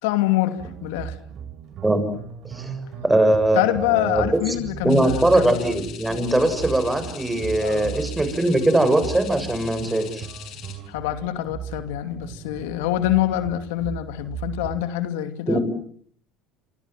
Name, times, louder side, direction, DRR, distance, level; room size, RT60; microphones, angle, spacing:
voice 1, 0.0-1.2 3.5-5.6 7.6-8.0 10.9-15.6, left 14 dB, 80° left, 9 dB, 2.6 m, -25 dB
sound 1, 0.6-14.8, right 8 dB, 50° right, 6.2 m, -37 dB
voice 2, 3.0-3.6 3.9-4.3 4.8-10.3 15.5-15.6, right 1 dB, 10° right, 10 dB, 7.1 m, -20 dB
sound 2, 4.9-10.7, left 10 dB, 60° left, 6.9 m, -41 dB
27.0 x 25.5 x 7.6 m, 0.62 s
supercardioid pair, 95°, 0 cm